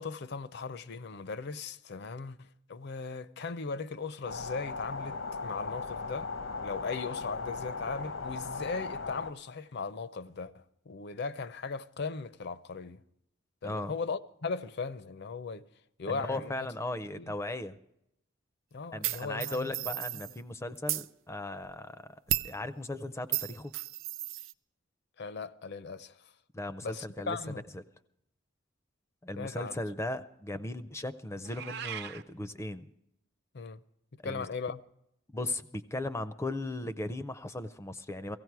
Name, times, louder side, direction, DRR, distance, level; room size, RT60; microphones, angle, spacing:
voice 1, 0.0-6.3 6.6-13.0 13.6-15.6 16.0-16.7 17.1-17.3 18.7-19.9 25.2-26.2 26.8-27.6 29.4-29.8 33.5-33.8 34.2-34.8, left 4 dB, 60° left, 0.6 m, -38 dB
sound 1, 4.2-9.3, left 4 dB, 80° left, 0.9 m, -38 dB
voice 2, 16.1-17.8 18.9-23.7 26.5-27.4 27.7-27.8 29.2-32.9 34.2-34.5 35.3-38.4, left 1 dB, 15° left, 0.5 m, -37 dB
sound 2, 19.0-20.4 20.7-21.1 22.3-22.6 23.3-24.5, right 15 dB, 85° right, 0.5 m, -33 dB
Meow, 31.4-32.2, right 9 dB, 55° right, 0.7 m, -40 dB
17.0 x 15.5 x 4.7 m
head